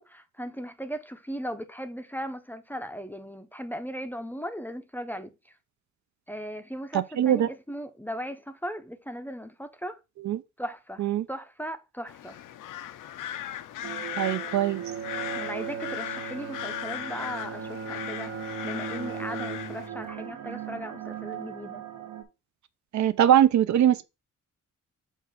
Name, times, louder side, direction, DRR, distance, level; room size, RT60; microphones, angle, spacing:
voice 1, 0.0-5.3 6.3-10.0 10.6-12.4 15.4-18.3 18.6-21.9, equal, 5° left, 0.5 m, -37 dB
voice 2, 6.9-7.5 10.2-10.4 11.0-11.3 14.2-14.8 22.9-24.0, right 10 dB, 65° right, 0.5 m, -22 dB
sound 1, 12.1-19.9, left 11 dB, 80° left, 0.6 m, -38 dB
sound 2, 13.8-16.3 17.2-22.2, right 11 dB, 80° right, 1.4 m, -41 dB
Bowed string instrument, 14.7-20.2, right 6 dB, 45° right, 1.3 m, -37 dB
7.2 x 2.5 x 5.5 m
cardioid pair, 125°, 31 cm